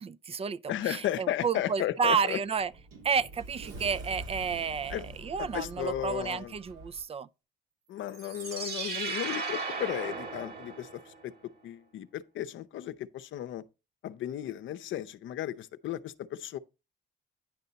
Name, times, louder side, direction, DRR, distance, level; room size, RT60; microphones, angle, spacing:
voice 1, 0.0-2.7 3.0-7.3, right 6 dB, 30° right, 0.4 m, -31 dB
voice 2, 0.7-2.4 4.9-5.0 5.4-6.5 7.9-11.3 11.6-13.6 14.0-16.6, left 12 dB, 75° left, 0.7 m, -35 dB
Sliding door, 2.2-7.0, right 2 dB, 90° right, 2.4 m, -45 dB
sound 1, 8.1-11.2, right 4 dB, 50° right, 2.1 m, -36 dB
10.0 x 5.6 x 4.0 m
cardioid pair, 90°, 20 cm